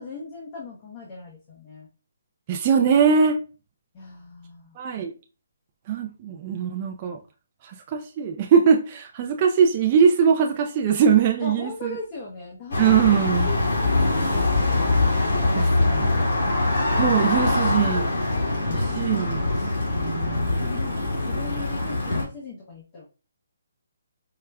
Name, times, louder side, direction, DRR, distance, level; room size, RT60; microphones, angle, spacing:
voice 1, 0.0-1.9 3.9-4.7 11.4-14.9 15.2-16.6 18.6-19.5 20.6-23.0, left 3 dB, 25° left, -3 dB, 0.6 m, -39 dB
voice 2, 2.5-3.4 4.8-5.1 5.9-7.2 7.6-12.0 12.8-13.5 15.6-16.0 17.0-18.1 18.7-19.5 19.9-20.6, right 7 dB, 30° right, 3 dB, 0.3 m, -21 dB
sound 1, 12.7-22.2, left 2 dB, 65° left, 1.8 m, -23 dB
4.7 x 2.1 x 2.2 m, 0.33 s
hypercardioid pair, 160°, 0 cm